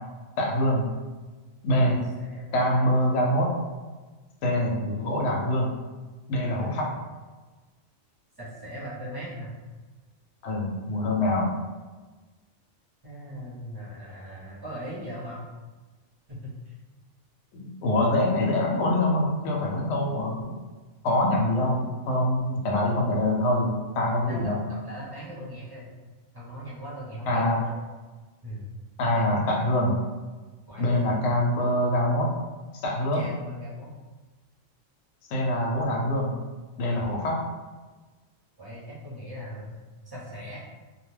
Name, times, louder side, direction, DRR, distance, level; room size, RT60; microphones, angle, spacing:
voice 1, 0.4-0.9 1.6-2.0 2.5-3.5 4.4-5.7 6.3-6.9 10.4-11.5 17.6-20.5 21.0-24.6 27.3-27.6 29.0-29.9 30.8-32.3 32.8-33.3 35.3-36.3 36.8-37.4, left 1 dB, 70° left, -1 dB, 0.9 m, -24 dB
voice 2, 1.9-2.9 6.7-6.8 8.4-9.5 13.0-15.5 16.3-16.8 24.3-25.9 26.3-27.7 28.4-28.6 29.0-29.4 30.7-31.1 33.1-33.9 38.6-39.7 40.0-40.6, equal, 20° right, -9 dB, 0.8 m, -39 dB
2.5 x 2.2 x 3.2 m, 1.3 s
omnidirectional pair, 1.3 m